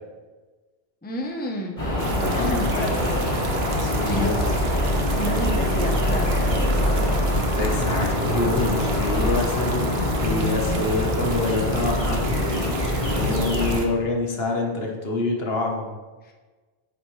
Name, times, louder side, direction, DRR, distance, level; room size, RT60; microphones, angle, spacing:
voice 1, 1.0-1.8 2.2-3.3 4.1-4.6 5.1-7.2 16.2-16.3, equal, 10° left, 1 dB, 0.7 m, -31 dB
sound 1, 1.8-13.8, left 1 dB, 30° left, 1.8 m, -24 dB
sound 2, 2.0-13.9, right 4 dB, 65° right, 1.1 m, -35 dB
voice 2, 3.8-4.4 7.5-9.9 10.2-15.9, left 3 dB, 65° left, 0 dB, 1.4 m, -26 dB
8.5 x 7.5 x 3.2 m, 1.3 s
omnidirectional pair, 1.1 m